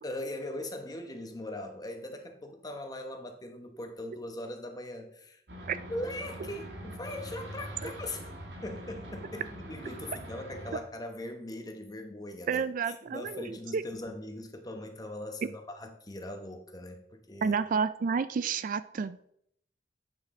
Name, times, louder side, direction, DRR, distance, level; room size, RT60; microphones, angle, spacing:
voice 1, 0.0-5.4 5.9-8.3 8.6-17.6, left 1 dB, 20° left, 5 dB, 1.0 m, -40 dB
sound 1, 5.5-10.8, equal, 75° right, 1.5 m, -43 dB
voice 2, 12.5-13.5 13.7-13.8 15.4-15.5 17.4-19.3, right 6 dB, 50° right, 14 dB, 0.3 m, -30 dB
8.8 x 6.0 x 3.7 m, 0.71 s
head